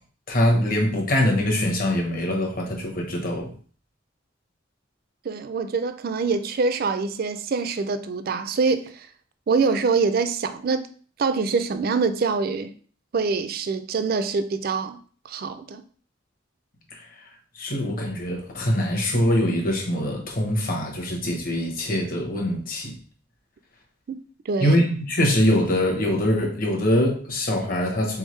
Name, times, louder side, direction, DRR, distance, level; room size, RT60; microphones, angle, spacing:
voice 1, 0.3-3.5 16.9-17.0 17.6-23.0 24.6-28.2, equal, 45° left, 1.0 m, -23 dB
voice 2, 5.2-9.1 9.5-10.9 11.2-12.7 13.1-15.0 15.3-15.8 24.1-24.2 24.5-24.8, right 4 dB, 50° right, 0.4 m, -24 dB
3.9 x 3.5 x 3.1 m
head